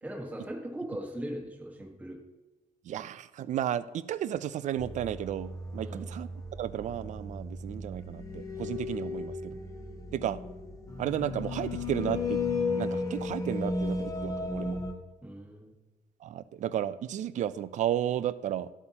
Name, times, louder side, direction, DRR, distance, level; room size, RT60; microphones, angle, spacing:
voice 1, 0.0-2.2 5.8-6.1 15.2-15.7, right 1 dB, 10° right, -1 dB, 1.4 m, -39 dB
voice 2, 2.8-6.3 6.6-9.6 10.1-10.4 11.0-12.4 12.8-14.8 16.2-18.7, right 11 dB, 50° right, 16 dB, 0.4 m, -33 dB
sound 1, 4.8-14.9, left 3 dB, 20° left, 1.1 m, -35 dB
11.5 x 8.1 x 2.9 m, 1.1 s
cardioid pair, 145°, 15 cm